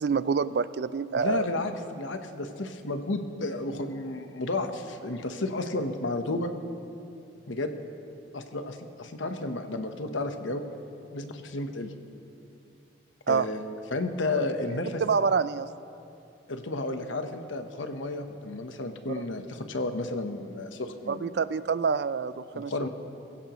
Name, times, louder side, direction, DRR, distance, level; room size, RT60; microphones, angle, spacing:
voice 1, 0.0-1.5 13.3-13.5 14.3-14.4 15.0-15.7 19.1-19.3 21.1-22.9, right 5 dB, 60° right, 15 dB, 0.4 m, -27 dB
voice 2, 1.2-6.5 7.5-7.7 8.3-10.6 11.1-11.9 13.3-15.0 16.5-21.4 22.5-22.9, left 2 dB, 85° left, 6 dB, 1.1 m, -32 dB
21.0 x 16.0 x 3.1 m, 2.7 s
head